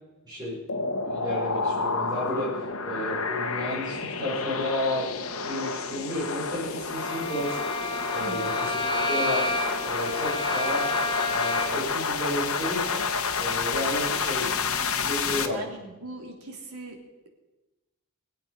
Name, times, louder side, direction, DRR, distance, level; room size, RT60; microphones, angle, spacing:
voice 1, 0.2-0.6 1.0-5.1 5.4-7.6 8.1-9.4 9.8-10.9 11.3-13.0 13.4-15.7, left 1 dB, 20° right, -9 dB, 5.1 m, -32 dB
sound 1, 0.7-15.5, left 4 dB, 70° left, 1.2 m, -29 dB
Bowed string instrument, 6.9-11.9, left 2 dB, 25° left, 1.6 m, -30 dB
voice 2, 8.2-8.5 15.5-17.0, right 2 dB, 85° right, 2 dB, 3.0 m, -39 dB
23.5 x 8.2 x 5.3 m, 1.1 s
head